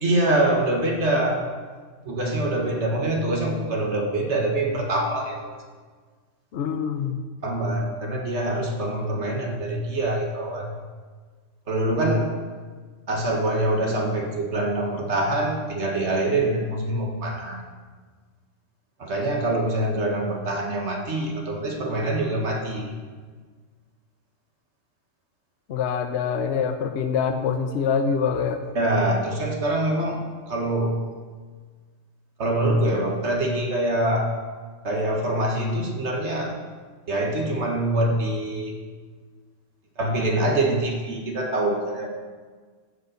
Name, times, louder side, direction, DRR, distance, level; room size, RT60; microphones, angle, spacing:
voice 1, 0.0-1.5 2.0-5.6 7.4-10.7 11.7-12.3 13.1-17.6 19.0-23.0 28.7-31.0 32.4-34.3 34.8-36.6 37.1-38.8 40.0-42.1, right 1 dB, 60° right, 1 dB, 1.9 m, -24 dB
voice 2, 6.5-7.2 25.7-28.6, left 6 dB, 60° left, 7 dB, 0.9 m, -25 dB
15.0 x 5.5 x 6.3 m, 1.5 s
omnidirectional pair, 1.3 m